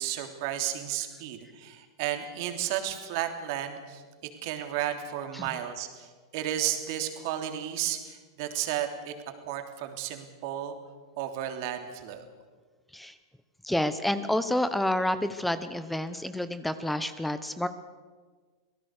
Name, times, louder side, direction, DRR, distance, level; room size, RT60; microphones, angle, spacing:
voice 1, 0.0-4.0 4.4-6.1 6.3-9.1 9.5-10.7 11.2-12.2, right 11 dB, 60° right, 6 dB, 3.2 m, -33 dB
voice 2, 13.6-17.7, left 1 dB, 5° left, 12 dB, 1.1 m, -29 dB
26.0 x 18.0 x 6.7 m, 1.5 s
hypercardioid pair, 115°, 2 cm